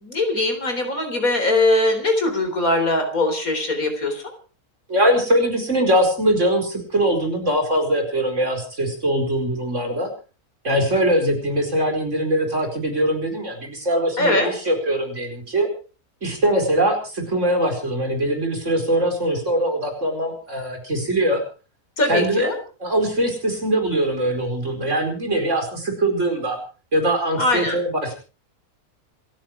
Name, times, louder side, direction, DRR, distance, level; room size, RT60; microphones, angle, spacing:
voice 1, 0.0-4.2 14.2-14.5 22.0-22.5 27.4-27.8, left 2 dB, 65° left, 6 dB, 4.3 m, -21 dB
voice 2, 4.9-10.1 10.6-15.7 16.2-21.4 22.1-22.5 22.8-26.6 26.9-28.1, right 1 dB, 50° right, 3 dB, 5.0 m, -22 dB
27.0 x 10.5 x 4.6 m, 0.37 s
omnidirectional pair, 1.6 m